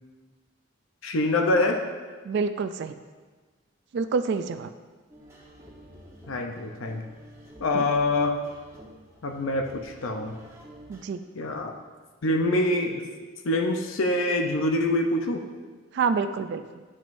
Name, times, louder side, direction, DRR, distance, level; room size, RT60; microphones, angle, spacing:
voice 1, 1.0-1.8 6.3-7.0 7.6-8.4 9.2-10.4 11.4-11.7 12.2-13.0 13.4-15.4, left 2 dB, 75° left, 3 dB, 0.6 m, -25 dB
voice 2, 2.2-3.0 3.9-4.7 7.7-7.8 10.9-11.2 15.9-16.8, right 5 dB, 55° right, 10 dB, 0.3 m, -27 dB
sound 1, 5.1-11.0, equal, 15° right, 1.0 m, -49 dB
10.5 x 6.2 x 2.6 m, 1.4 s
head